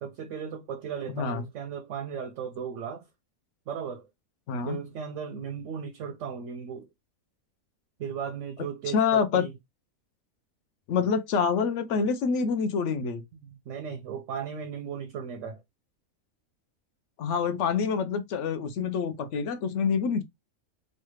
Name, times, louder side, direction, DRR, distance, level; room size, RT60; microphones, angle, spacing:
voice 1, 0.0-3.1 3.7-4.1 4.7-6.9 8.0-9.5 13.3-15.6, right 7 dB, 70° right, 0.8 m, -36 dB
voice 2, 1.1-1.4 4.5-4.8 8.9-9.5 10.9-13.2 17.2-20.2, left 6 dB, 65° left, 0.8 m, -26 dB
3.2 x 2.3 x 3.1 m
omnidirectional pair, 1.6 m